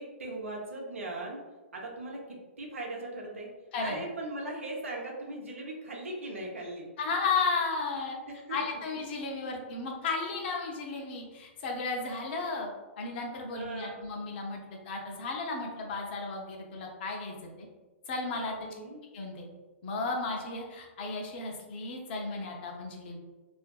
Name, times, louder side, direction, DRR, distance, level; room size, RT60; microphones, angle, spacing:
voice 1, 0.0-1.4 1.7-3.5 3.8-6.9 8.3-8.6 8.9-9.0 13.5-14.0 18.5-19.1, right 2 dB, 90° right, -1 dB, 0.7 m, -39 dB
voice 2, 7.0-8.2 8.5-12.7 13.0-17.7 18.1-18.5 19.1-19.5 19.8-23.2, left 4 dB, 55° left, 1 dB, 0.6 m, -34 dB
2.5 x 2.5 x 2.2 m, 1.2 s
hypercardioid pair, 125°, 7 cm